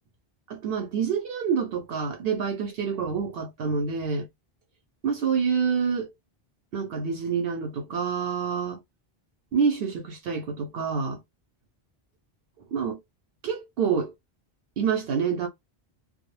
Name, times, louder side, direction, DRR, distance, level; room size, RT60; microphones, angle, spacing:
voice 1, 0.5-4.3 5.0-6.1 6.7-8.8 9.5-11.2 12.7-13.0 13.4-14.1 14.8-15.5, right 6 dB, 70° right, 0.8 m, -27 dB
2.2 x 2.0 x 3.0 m
omnidirectional pair, 1.0 m